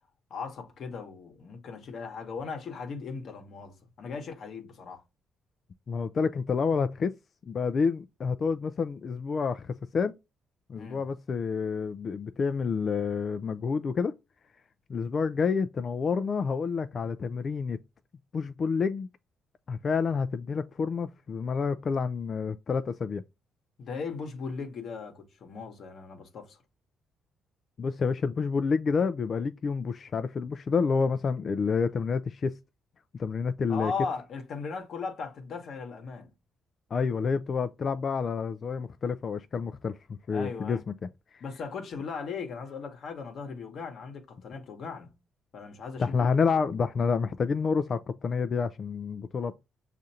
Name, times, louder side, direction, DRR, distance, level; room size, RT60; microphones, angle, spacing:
voice 1, 0.3-5.0 10.7-11.0 23.8-26.6 33.7-36.3 40.3-40.8 41.4-45.1 45.5-46.3, left 5 dB, 60° left, 1.0 m, -38 dB
voice 2, 5.9-7.1 7.5-10.1 10.7-14.1 14.9-17.8 18.3-19.1 19.7-23.2 27.8-32.5 33.2-33.9 36.9-40.0 40.3-40.8 46.0-49.6, left 5 dB, 45° left, 0.3 m, -28 dB
6.4 x 2.5 x 2.7 m
cardioid pair, 90°, 0 cm